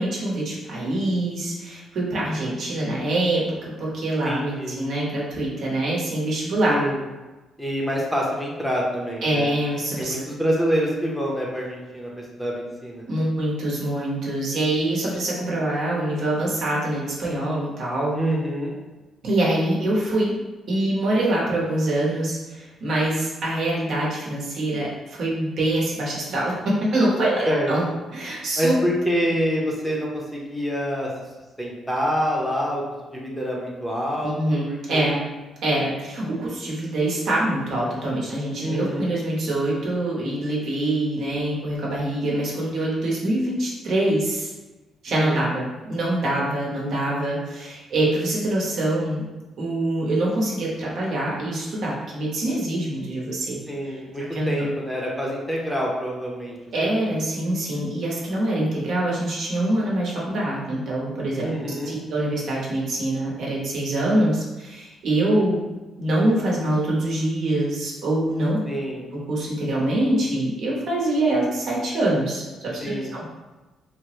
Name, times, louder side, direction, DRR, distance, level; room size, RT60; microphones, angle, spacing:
voice 1, 0.0-6.8 9.2-10.1 13.1-18.1 19.2-20.3 20.7-27.8 28.1-28.8 34.2-35.2 35.6-44.5 45.0-49.2 49.6-53.6 53.8-54.0 54.3-54.6 56.7-65.6 66.0-68.6 69.3-73.2, right 1 dB, 70° right, -4 dB, 0.9 m, -24 dB
voice 2, 4.2-4.8 6.6-7.0 7.6-9.5 10.0-12.1 12.4-13.0 18.1-18.8 27.5-27.7 28.6-31.1 31.6-32.8 33.1-35.0 38.6-39.1 45.2-45.4 53.7-56.6 57.0-57.1 61.4-62.0 68.7-69.0 72.8-73.1, equal, ahead, -3 dB, 0.6 m, -26 dB
3.2 x 2.0 x 3.0 m, 1.2 s
cardioid pair, 90°, 0 cm